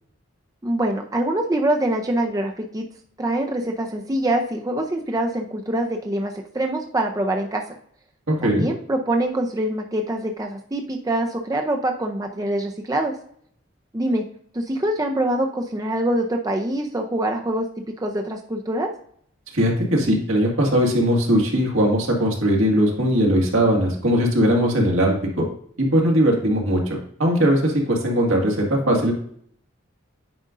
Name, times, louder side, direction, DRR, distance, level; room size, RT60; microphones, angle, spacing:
voice 1, 0.6-2.8 3.2-7.6 8.4-13.1 13.9-14.2 14.5-17.7 18.0-18.9, right 1 dB, 15° right, 3 dB, 0.5 m, -24 dB
voice 2, 19.5-25.4 25.8-29.1, equal, 80° right, 0 dB, 2.0 m, -19 dB
9.2 x 5.1 x 2.5 m, 0.63 s
head